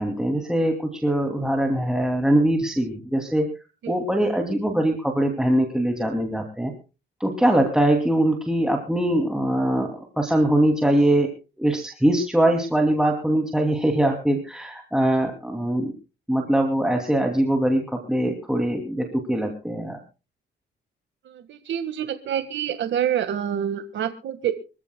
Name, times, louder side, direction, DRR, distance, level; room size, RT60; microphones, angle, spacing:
voice 1, 0.0-3.5 3.9-6.7 7.2-11.3 11.6-15.9 16.3-20.0, right 1 dB, 5° right, 2 dB, 2.7 m, -22 dB
voice 2, 21.2-24.5, right 10 dB, 70° right, 8 dB, 1.7 m, -27 dB
25.5 x 15.0 x 2.3 m, 0.32 s
cardioid pair, 90°, 20 cm